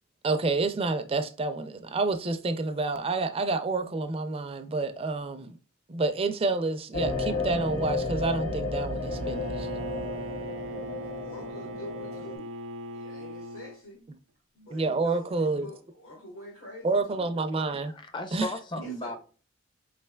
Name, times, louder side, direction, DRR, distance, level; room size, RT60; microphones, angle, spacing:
voice 1, 0.2-5.6 5.9-9.7 14.7-15.7 16.8-17.9 18.3-18.5, right 3 dB, 30° right, 0.4 m, -28 dB
sound 1, 6.9-12.3, left 3 dB, 90° left, 1.5 m, -32 dB
Bowed string instrument, 9.0-13.8, right 2 dB, 90° right, 0.4 m, -39 dB
voice 2, 11.0-12.5 12.9-14.0 14.5-17.3 18.8-19.2, left 1 dB, 70° left, 1.4 m, -46 dB
voice 3, 17.8-19.2, left 1 dB, 25° left, 0.5 m, -35 dB
4.8 x 3.3 x 2.2 m
head